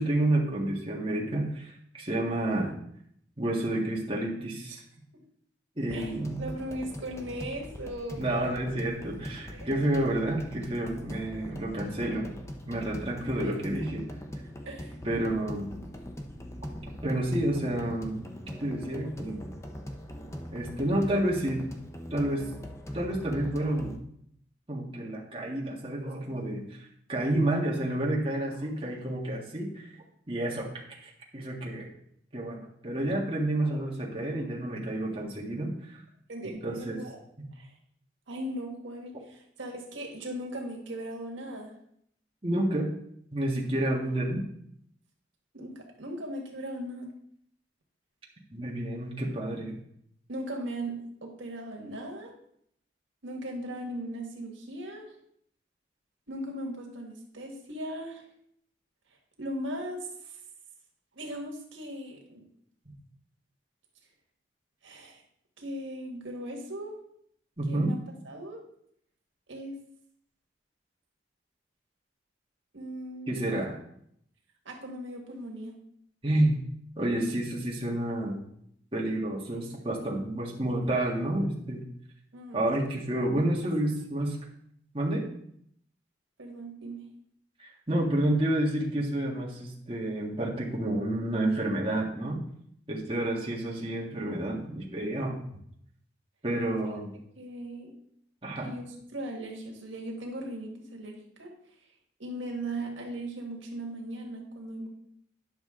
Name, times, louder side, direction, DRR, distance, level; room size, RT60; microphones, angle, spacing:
voice 1, 0.0-2.7 3.4-4.8 5.8-6.5 8.2-12.3 12.7-14.0 15.0-15.7 17.0-18.3 18.6-19.5 20.5-21.6 22.1-22.5 22.9-23.9 24.7-26.8 27.1-29.8 30.3-30.7 31.0-31.9 32.3-36.0 36.6-37.0 42.4-42.9 43.3-44.4 48.5-49.7 67.6-67.9 73.3-73.8 76.2-76.6 77.0-78.4 78.9-81.8 82.5-84.4 84.9-85.3 87.6-92.4 92.9-95.4 96.4-97.2 98.4-98.7, right 1 dB, 30° right, -3 dB, 1.6 m, -29 dB
sound 1, 5.9-24.0, equal, 15° left, 0.7 m, -41 dB
voice 2, 5.9-8.6 9.5-10.0 11.7-12.2 13.2-13.8 14.6-14.9 36.3-37.2 37.5-37.7 38.3-41.7 45.5-47.1 50.3-52.3 53.2-55.1 56.3-58.2 59.4-60.0 60.2-60.4 61.2-62.5 64.8-65.2 65.6-67.0 67.7-68.0 68.2-68.6 69.5-69.8 72.7-73.6 74.7-75.7 82.3-82.7 83.6-83.7 86.4-87.0 94.2-94.6 97.4-97.9 98.6-98.8 99.1-101.5 102.2-104.9, right 1 dB, 85° right, 0 dB, 1.7 m, -38 dB
10.5 x 6.2 x 3.7 m, 0.70 s
head